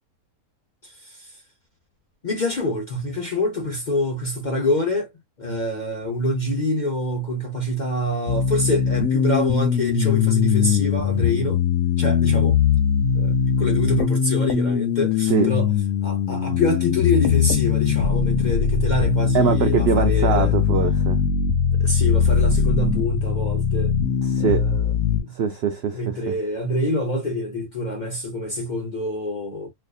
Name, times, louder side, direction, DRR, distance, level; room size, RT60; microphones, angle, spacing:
voice 1, 0.8-1.3 2.2-5.1 5.4-11.6 12.0-12.6 13.1-15.7 16.0-20.5 21.8-24.0 24.4-25.3 25.9-29.7, left 1 dB, 45° left, 0.6 m, -26 dB
sound 1, 8.3-25.2, left 7 dB, 65° left, 0.9 m, -21 dB
voice 2, 19.3-21.2 24.2-24.7 25.3-26.4, right 7 dB, 80° right, 0.5 m, -23 dB
4.2 x 2.6 x 2.3 m
omnidirectional pair, 1.7 m